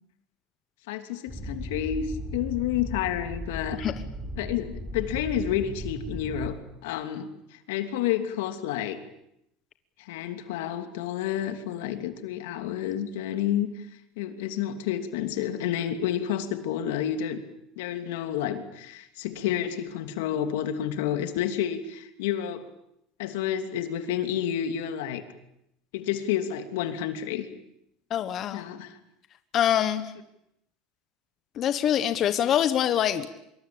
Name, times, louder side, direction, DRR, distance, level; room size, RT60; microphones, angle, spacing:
voice 1, 0.9-2.1 2.3-3.8 4.4-9.0 10.0-13.7 14.2-17.4 17.8-22.6 23.2-25.2 25.9-27.5 28.5-29.0, left 10 dB, 85° left, 8 dB, 2.9 m, -30 dB
sound 1, 1.3-6.5, equal, 5° right, 5.9 m, -36 dB
voice 2, 28.1-28.6 29.5-30.1 31.6-33.3, left 10 dB, 35° left, 11 dB, 1.2 m, -24 dB
25.5 x 23.0 x 8.8 m, 0.80 s
cardioid pair, 155°, 0 cm